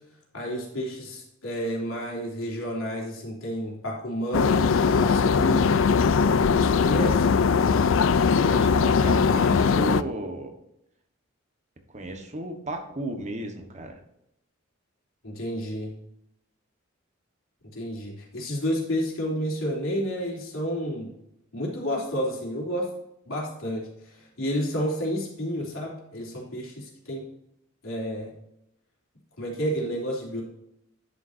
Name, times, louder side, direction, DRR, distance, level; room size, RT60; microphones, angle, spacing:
voice 1, 0.3-4.6 5.0-5.9 6.5-7.3 15.2-15.9 17.7-21.1 21.5-22.9 23.2-27.3 27.8-28.3 29.4-30.4, equal, 90° left, -3 dB, 3.4 m, -30 dB
sound 1, 4.3-10.0, left 5 dB, 70° left, 0.4 m, -20 dB
voice 2, 8.4-10.5 11.9-14.0, right 1 dB, 35° right, 5 dB, 1.3 m, -34 dB
10.5 x 7.2 x 2.7 m, 0.81 s
head